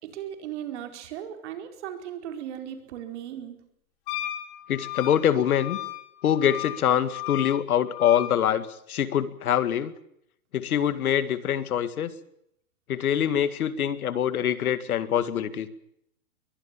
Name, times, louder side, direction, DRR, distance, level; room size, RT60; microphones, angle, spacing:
voice 1, 0.0-3.6, right 10 dB, 50° right, 6 dB, 4.6 m, -37 dB
Wind instrument woodwind instrument, 4.1-8.3, left 14 dB, 35° left, 3.0 m, -35 dB
voice 2, 4.7-5.8 6.2-9.9 10.5-12.1 12.9-15.7, left 9 dB, 75° left, 13 dB, 2.1 m, -24 dB
22.5 x 20.0 x 7.3 m, 0.75 s
hypercardioid pair, 150°, 44 cm